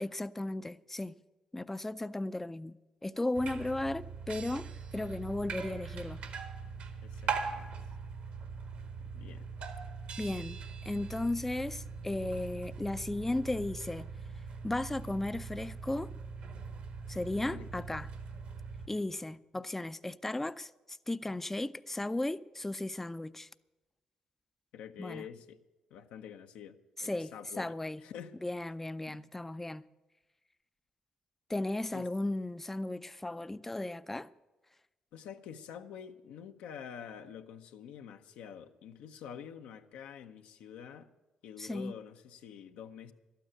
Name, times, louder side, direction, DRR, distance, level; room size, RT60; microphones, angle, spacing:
voice 1, 0.0-1.1 1.5-2.8 3.0-6.2 10.2-14.1 14.6-16.1 17.1-18.1 18.9-23.5 25.0-25.2 27.0-28.0 28.4-29.8 31.5-34.3 41.6-41.9, left 2 dB, 15° left, 0.4 m, -35 dB
sound 1, 3.3-18.9, right 5 dB, 75° right, 1.6 m, -41 dB
voice 2, 7.0-7.7 9.1-9.4 17.5-18.0 24.7-25.6 25.9-28.4 29.1-29.3 31.9-32.1 35.1-41.1 41.4-43.1, left 8 dB, 85° left, 0.8 m, -47 dB
12.5 x 9.2 x 9.0 m
supercardioid pair, 60°, 2 cm